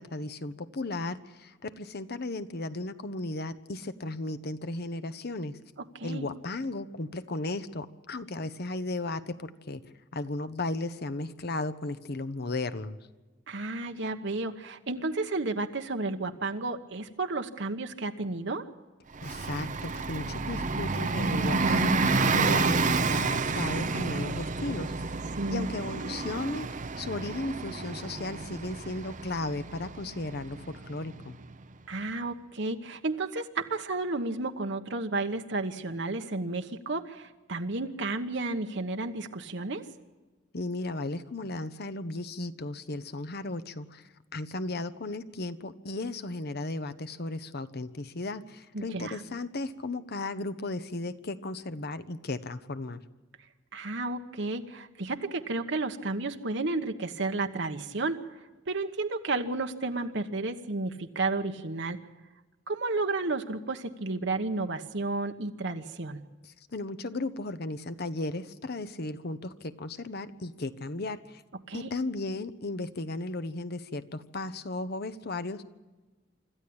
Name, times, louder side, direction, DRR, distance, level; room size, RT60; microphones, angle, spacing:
voice 1, 0.0-5.6 6.0-9.8 10.1-13.0 19.2-25.2 25.5-26.7 27.0-31.4 40.5-44.0 44.3-53.0 66.4-71.4 71.7-75.6, left 2 dB, 55° left, 12 dB, 1.0 m, -35 dB
voice 2, 13.5-18.7 25.3-25.7 31.9-39.8 48.7-49.2 53.7-58.2 58.7-62.0 62.7-66.2 71.7-71.9, right 3 dB, 65° right, 5 dB, 1.2 m, -32 dB
Bus, 19.1-31.4, right 4 dB, 40° right, 0.8 m, -30 dB
26.0 x 13.5 x 8.7 m, 1.2 s
head